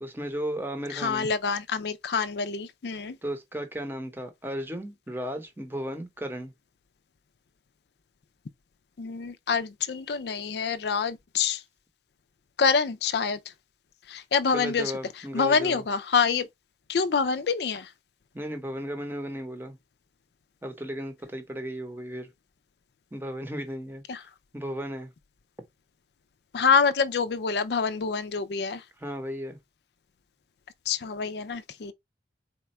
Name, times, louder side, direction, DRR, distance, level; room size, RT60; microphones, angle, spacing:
voice 1, 0.0-1.3 3.2-6.5 14.5-15.8 18.3-19.8 20.6-22.3 23.1-24.0 24.5-25.1 29.0-29.6, equal, 10° right, 0.8 m, -35 dB
voice 2, 0.9-3.2 9.0-11.6 12.6-13.4 14.1-14.9 15.3-16.5 16.9-17.9 24.1-24.2 26.5-28.8 30.9-31.9, left 5 dB, 65° left, 0.4 m, -26 dB
4.2 x 2.3 x 4.1 m
head